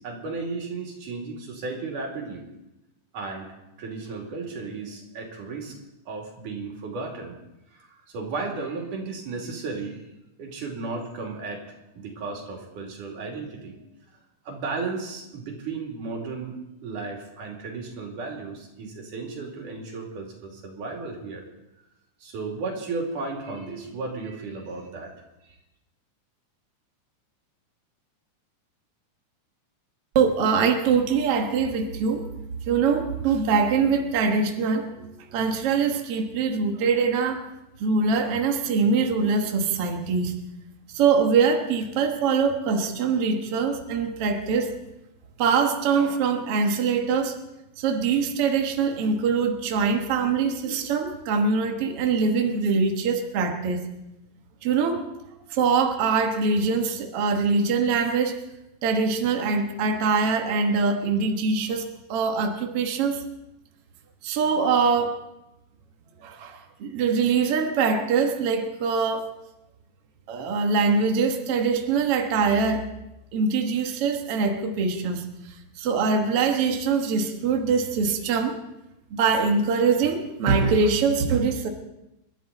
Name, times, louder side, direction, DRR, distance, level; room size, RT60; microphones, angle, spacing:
voice 1, 0.0-2.4 3.1-5.8 6.1-7.4 7.7-10.0 10.4-13.8 14.5-21.4 22.2-25.1 25.5-25.6, right 3 dB, 85° right, 0 dB, 4.3 m, -34 dB
voice 2, 30.2-32.3 32.7-34.9 35.3-37.4 37.8-40.3 40.9-44.7 45.4-47.4 47.8-53.9 54.6-55.1 55.5-58.4 58.8-63.2 64.2-65.2 66.2-69.3 70.3-72.9 73.3-75.3 75.8-78.5 79.1-81.7, right 5 dB, 55° right, 3 dB, 2.1 m, -23 dB
27.5 x 12.5 x 4.1 m, 0.91 s
omnidirectional pair, 3.5 m